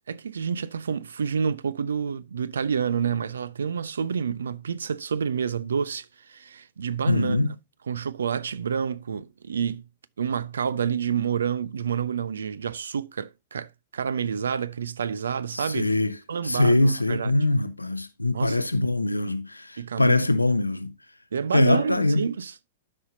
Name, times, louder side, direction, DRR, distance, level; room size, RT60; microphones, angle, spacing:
voice 1, 0.1-7.4 7.9-9.8 10.2-15.9 16.3-17.4 18.3-18.7 19.8-20.2 21.3-22.5, right 7 dB, 70° right, 0.4 m, -28 dB
voice 2, 7.1-7.5 15.5-16.2 16.4-20.9 21.5-22.3, left 2 dB, 85° left, 0.6 m, -23 dB
12.5 x 5.5 x 2.7 m
figure-of-eight pair, 90°, 0 cm